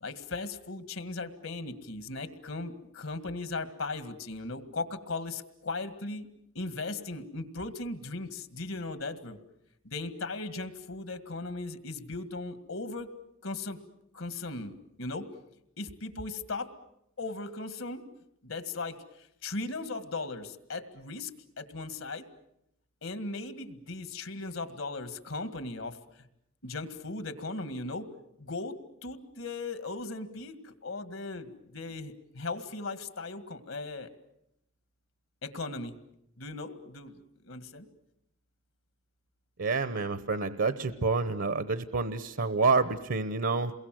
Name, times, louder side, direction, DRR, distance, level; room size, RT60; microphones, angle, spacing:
voice 1, 0.0-6.3 6.5-9.4 9.8-13.1 13.4-13.8 14.1-15.3 15.8-16.7 17.2-18.0 18.4-21.3 21.6-22.3 23.0-26.0 26.6-28.1 28.4-34.1 35.4-36.0 36.4-37.9, left 3 dB, 75° left, 10 dB, 2.0 m, -38 dB
voice 2, 39.6-43.7, right 4 dB, 70° right, 12 dB, 0.9 m, -28 dB
28.5 x 22.5 x 7.7 m, 0.78 s
head